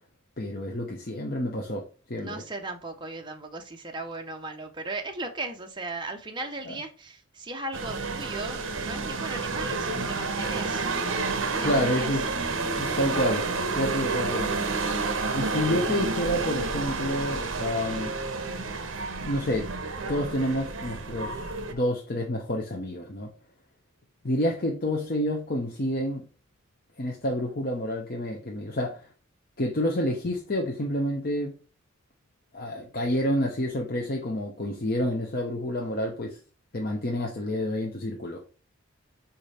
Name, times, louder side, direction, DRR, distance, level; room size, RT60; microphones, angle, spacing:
voice 1, 0.4-1.8 2.1-2.4 6.7-6.8 11.6-12.2 12.8-13.4 13.7-14.6 15.3-18.1 19.2-19.8 20.1-23.3 24.2-26.2 27.0-29.1 29.6-31.6 32.5-36.4 36.7-38.4, left 1 dB, 40° left, 0 dB, 0.8 m, -29 dB
voice 2, 2.2-10.9 11.6-12.1, right 2 dB, 20° right, 3 dB, 0.8 m, -37 dB
sound 1, 7.7-21.7, right 3 dB, 60° right, 0.9 m, -30 dB
5.1 x 4.3 x 4.2 m, 0.36 s
head